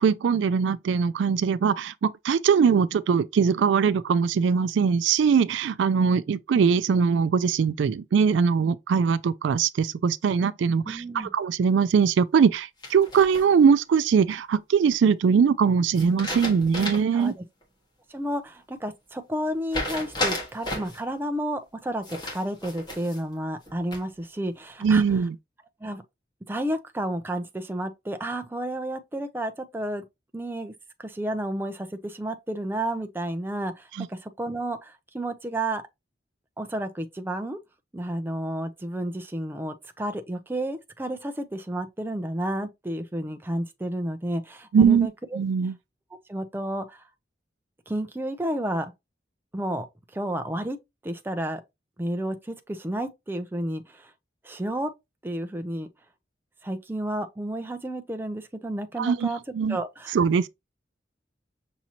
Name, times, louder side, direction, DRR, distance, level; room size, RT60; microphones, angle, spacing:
voice 1, 0.0-17.3 24.8-25.4 34.0-34.1 44.7-45.1 45.4-45.8 59.0-59.3 59.5-59.8 60.1-60.5, right 6 dB, 80° right, 0.3 m, -21 dB
voice 2, 10.8-11.3 17.1-17.3 18.1-25.0 25.8-26.0 26.5-30.0 30.3-30.7 31.0-35.8 36.6-37.6 37.9-45.4 46.3-47.0 47.9-48.9 49.5-49.9 50.1-50.8 51.0-51.6 52.0-54.1 54.4-54.9 55.2-55.9 56.6-59.4 59.7-60.2, right 1 dB, 10° right, 0.4 m, -31 dB
sound 1, 12.8-13.7 15.9-17.2 17.6-17.7 19.7-21.0 22.0-23.2 23.6-24.2, left 1 dB, 25° left, 1.5 m, -33 dB
6.0 x 2.8 x 2.8 m
head